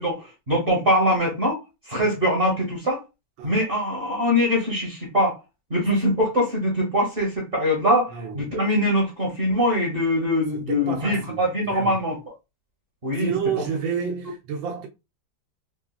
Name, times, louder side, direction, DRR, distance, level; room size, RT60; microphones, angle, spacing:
voice 1, 0.0-1.6 1.9-3.0 3.4-5.4 5.7-12.2 13.0-13.3, equal, 40° right, 0.9 m, -23 dB
voice 2, 8.1-8.5 10.7-12.0 13.2-14.9, right 7 dB, 90° right, 1.5 m, -30 dB
3.7 x 2.4 x 2.2 m
omnidirectional pair, 2.0 m